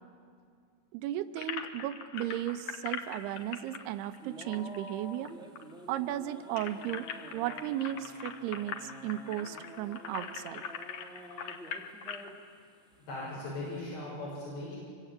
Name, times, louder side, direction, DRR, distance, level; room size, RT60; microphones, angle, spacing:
voice 1, 0.9-5.3 5.9-10.6, right 12 dB, 80° right, 10 dB, 2.8 m, -35 dB
sound 1, 1.4-5.3 5.6-5.7 5.9-12.3, left 7 dB, 60° left, 2.2 m, -41 dB
sound 2, 2.2-12.7 13.1-13.8, equal, 5° right, 0.6 m, -50 dB
voice 2, 13.0-14.8, left 2 dB, 85° left, -7 dB, 8.6 m, -39 dB
26.0 x 24.5 x 8.8 m, 2.2 s
omnidirectional pair, 4.8 m